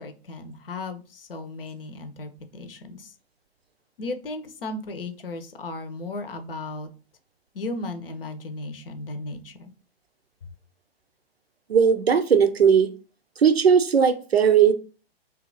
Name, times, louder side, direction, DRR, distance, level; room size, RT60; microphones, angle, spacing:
voice 1, 0.0-3.1 4.0-6.9 7.5-9.7, left 2 dB, 65° left, 0.7 m, -35 dB
voice 2, 11.7-12.9 13.4-14.7, right 7 dB, 80° right, 0.5 m, -18 dB
2.8 x 2.4 x 3.8 m
figure-of-eight pair, 110°, 31 cm